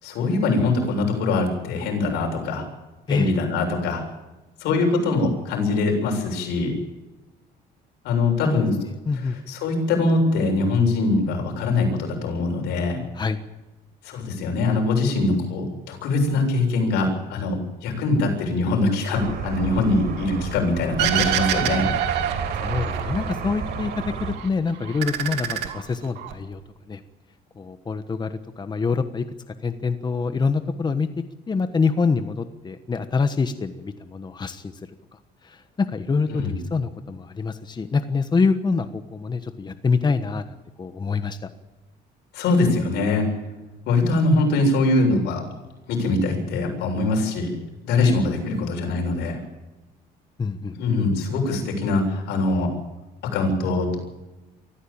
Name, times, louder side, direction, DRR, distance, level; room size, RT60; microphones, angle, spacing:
voice 1, 0.0-2.6 3.1-4.0 4.6-6.7 8.0-8.7 9.5-13.0 14.0-21.9 36.3-36.6 42.3-43.2 43.9-45.4 45.9-47.5 47.8-49.4 50.7-52.7 53.3-54.0, left 3 dB, 85° left, 2 dB, 7.5 m, -22 dB
voice 2, 9.0-9.4 13.1-13.4 22.6-26.6 26.9-27.0 27.6-29.2 29.6-34.8 35.1-41.5 48.0-48.2 50.4-50.7, left 4 dB, 25° left, 9 dB, 1.3 m, -25 dB
sound 1, 19.1-24.3, right 6 dB, 65° right, 5.3 m, -31 dB
sound 2, 21.0-23.3 23.7-24.5 24.8-26.3, right 10 dB, 90° right, 2.8 m, -26 dB
23.5 x 15.0 x 8.8 m, 1.1 s
cardioid pair, 110°, 17 cm